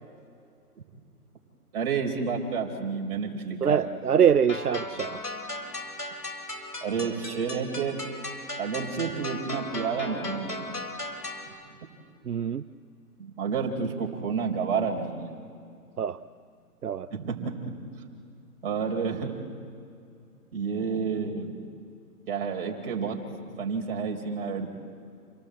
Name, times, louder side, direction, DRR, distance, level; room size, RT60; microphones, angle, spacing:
voice 1, 1.7-3.9 6.8-8.0 8.6-10.6 13.2-15.4 17.1-17.7 18.6-19.4 20.5-21.6 22.3-24.7, right 5 dB, 40° right, 1 dB, 4.4 m, -30 dB
voice 2, 3.6-5.2 12.3-12.6 16.0-16.2 16.8-17.1, right 8 dB, 75° right, 11 dB, 0.8 m, -24 dB
sound 1, 4.5-11.5, left 2 dB, 90° left, 4.2 m, -37 dB
28.5 x 18.5 x 8.2 m, 2.4 s
figure-of-eight pair, 135°, 46 cm